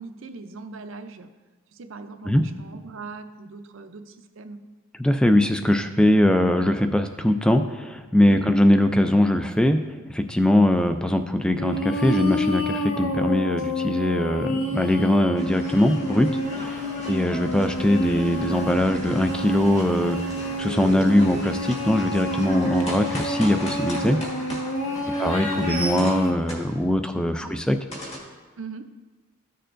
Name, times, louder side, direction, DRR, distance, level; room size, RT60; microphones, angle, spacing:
voice 1, 0.0-1.3 1.7-4.6 8.3-8.5 16.6-17.2 22.5-22.9 24.9-25.2 27.4-27.5 28.6-28.9, right 4 dB, 70° right, 9 dB, 0.6 m, -40 dB
voice 2, 5.0-9.8 10.1-16.3 17.1-20.2 20.6-24.2 25.2-27.8, left 1 dB, 5° left, 8 dB, 0.3 m, -21 dB
sound 1, 11.6-26.3, equal, 70° left, 0.8 m, -29 dB
sound 2, 15.3-27.1 27.9-28.2, equal, 30° left, 1.8 m, -36 dB
14.0 x 6.7 x 2.6 m, 1.3 s
head